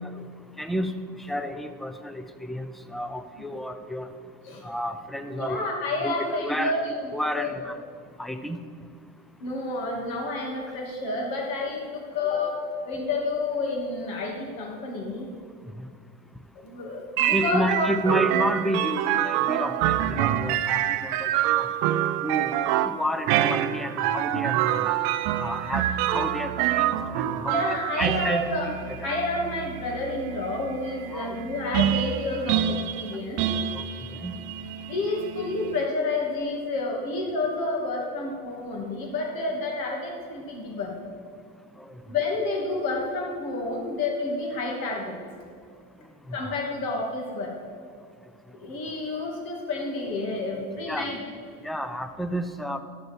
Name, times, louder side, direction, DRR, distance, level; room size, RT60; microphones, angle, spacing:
voice 1, 0.6-0.9 1.3-4.1 4.6-5.7 6.0-6.7 7.1-7.8 8.2-8.6 17.3-21.7 22.2-22.5 22.8-24.9 25.4-28.7 29.0-29.2 31.1-31.4 33.7-33.8 34.1-34.4 41.8-41.9 46.3-46.4 50.9-51.1 51.6-52.8, equal, ahead, 9 dB, 0.6 m, -31 dB
voice 2, 5.3-6.8 7.4-7.5 9.4-15.3 16.5-17.9 27.4-28.7 29.0-33.5 34.9-41.0 42.1-45.2 46.3-47.6 48.6-51.2, left 2 dB, 55° left, -1 dB, 2.7 m, -29 dB
sound 1, 17.2-35.9, right 11 dB, 60° right, 0.7 m, -26 dB
13.0 x 6.5 x 4.6 m, 2.2 s
supercardioid pair, 95°, 41 cm